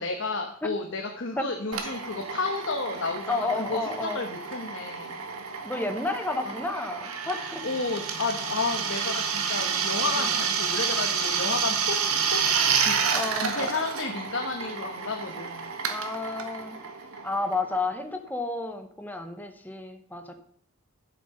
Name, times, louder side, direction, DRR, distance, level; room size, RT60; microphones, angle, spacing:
voice 1, 0.0-5.2 6.4-6.5 7.6-13.0 13.3-15.7, left 3 dB, 55° left, 3 dB, 1.2 m, -32 dB
Drill, 1.7-18.1, right 6 dB, 75° right, 1.6 m, -30 dB
voice 2, 3.3-4.2 5.6-7.6 10.2-10.3 13.1-13.5 15.9-16.8 17.2-20.4, left 2 dB, 10° left, 6 dB, 0.9 m, -31 dB
12.0 x 7.6 x 5.5 m, 0.63 s
head